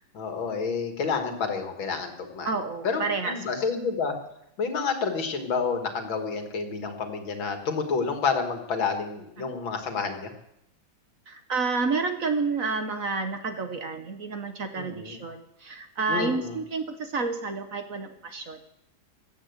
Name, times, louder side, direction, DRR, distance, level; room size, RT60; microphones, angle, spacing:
voice 1, 0.1-2.5 2.8-4.2 4.6-10.3 14.8-15.2 16.1-16.6, left 5 dB, 75° left, 5 dB, 2.7 m, -29 dB
voice 2, 2.4-3.7 9.4-9.6 11.3-18.6, right 4 dB, 50° right, 7 dB, 1.4 m, -30 dB
16.0 x 10.0 x 8.1 m, 0.82 s
omnidirectional pair, 2.2 m